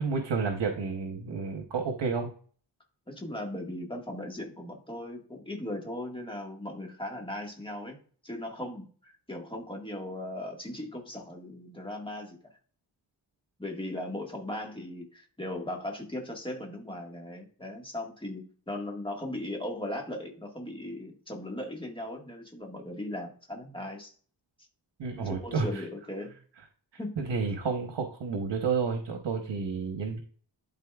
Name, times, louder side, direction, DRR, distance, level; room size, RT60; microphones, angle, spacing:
voice 1, 0.0-2.3 25.0-25.8 27.2-30.2, right 5 dB, 75° right, 4 dB, 1.1 m, -30 dB
voice 2, 3.1-8.0 8.2-12.4 13.6-24.1 25.2-26.3 27.0-27.2, left 1 dB, 10° left, 0 dB, 1.7 m, -38 dB
12.0 x 4.2 x 2.4 m, 0.44 s
wide cardioid pair, 105°, 43 cm